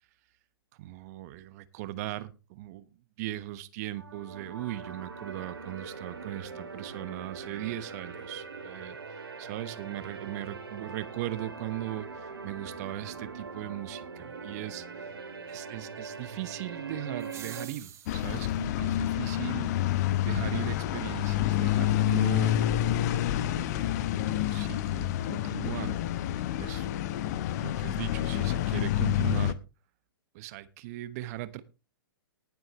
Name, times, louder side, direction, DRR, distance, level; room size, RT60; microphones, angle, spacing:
voice 1, 0.8-2.8 3.2-9.0 9.4-15.1 15.5-19.7 20.2-22.6 23.3-24.1 24.5-26.0 26.6-26.9 27.6-29.6 30.3-31.6, right 15 dB, 45° right, 14 dB, 1.2 m, -38 dB
sound 1, 3.9-17.6, right 5 dB, 80° right, 3.3 m, -42 dB
sound 2, 17.2-18.5, right 10 dB, 25° right, 1.8 m, -47 dB
sound 3, 18.1-29.5, left 12 dB, 45° left, 0.9 m, -28 dB
19.5 x 7.7 x 3.0 m, 0.30 s
figure-of-eight pair, 110°, 12 cm